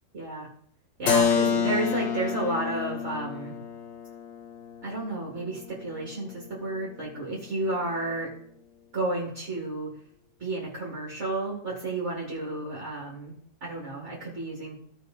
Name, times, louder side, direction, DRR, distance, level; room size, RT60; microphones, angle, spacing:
voice 1, 0.1-0.5 1.0-3.6 4.8-8.3 8.9-9.9 10.4-13.3 13.6-14.8, right 2 dB, 40° right, -5 dB, 2.5 m, -32 dB
Keyboard (musical), 1.1-6.7, left 7 dB, 55° left, 1.1 m, -29 dB
16.0 x 5.5 x 3.9 m, 0.67 s
omnidirectional pair, 1.8 m